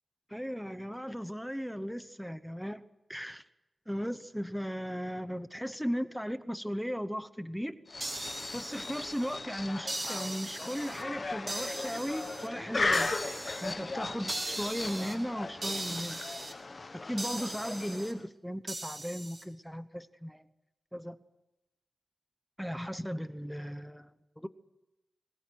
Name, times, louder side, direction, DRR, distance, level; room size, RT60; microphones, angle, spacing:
voice 1, 0.3-2.8 3.1-3.4 3.9-7.8 8.5-13.1 13.6-16.2 16.9-20.4 20.9-21.2 22.6-24.5, equal, ahead, 12 dB, 0.9 m, -36 dB
sound 1, 7.9-18.3, left 3 dB, 30° left, 1.3 m, -37 dB
sound 2, 8.0-9.4 9.9-11.0 11.5-12.5 12.9-13.7 14.3-15.1 15.6-16.5 17.2-18.1 18.7-19.4, right 2 dB, 25° right, 4.9 m, -39 dB
sound 3, 10.8-16.0, right 2 dB, 60° right, 5.7 m, -55 dB
22.5 x 20.5 x 9.4 m, 0.98 s
wide cardioid pair, 150°, 0 cm